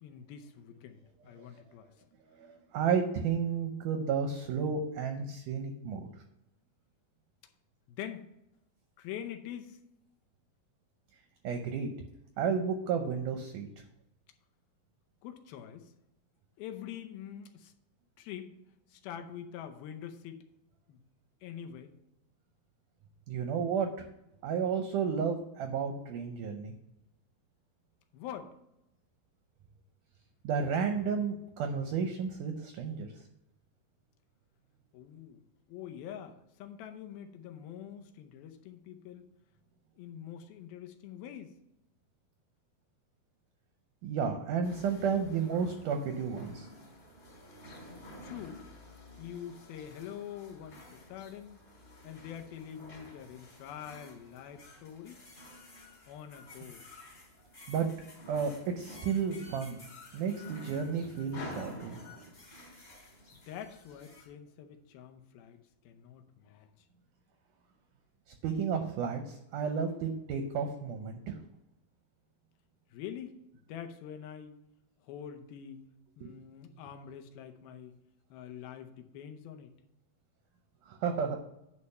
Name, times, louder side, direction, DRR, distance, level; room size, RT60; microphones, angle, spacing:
voice 1, 0.0-1.9 7.9-8.3 9.0-9.8 15.2-15.9 16.6-17.7 18.2-18.6 18.9-20.4 20.9-21.0 21.4-21.9 28.1-28.5 34.9-35.4 35.7-39.3 40.0-41.6 48.2-48.7 49.2-51.6 52.0-55.2 56.1-56.8 63.3-66.7 72.9-74.6 75.0-75.8 76.2-78.0 78.3-79.7, left 9 dB, 80° left, 6 dB, 2.6 m, -45 dB
voice 2, 2.4-6.1 11.4-11.9 12.4-13.7 23.3-24.1 24.4-26.7 30.4-33.1 44.0-46.7 57.7-57.9 58.3-59.8 60.1-62.0 68.4-71.4 76.2-76.3 80.9-81.4, right 6 dB, 75° right, 5 dB, 2.0 m, -32 dB
sound 1, 44.6-64.3, left 1 dB, 20° left, 2.7 m, -50 dB
10.0 x 4.2 x 5.6 m, 0.84 s
omnidirectional pair, 4.3 m